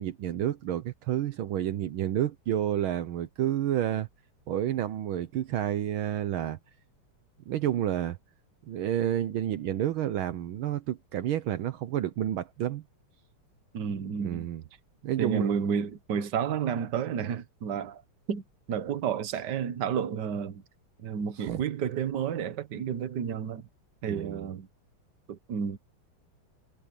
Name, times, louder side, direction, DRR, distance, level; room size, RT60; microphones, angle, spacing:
voice 1, 0.0-4.1 4.5-6.6 7.5-8.2 8.7-12.8 14.2-14.6 15.0-15.6 21.4-21.6 24.1-24.5, right 11 dB, 75° right, 1.6 m, -30 dB
voice 2, 13.7-14.5 15.2-18.0 18.3-18.4 18.7-20.6 21.0-23.7 24.0-24.7 25.3-25.8, right 7 dB, 55° right, 1.7 m, -31 dB
omnidirectional pair, 2.4 m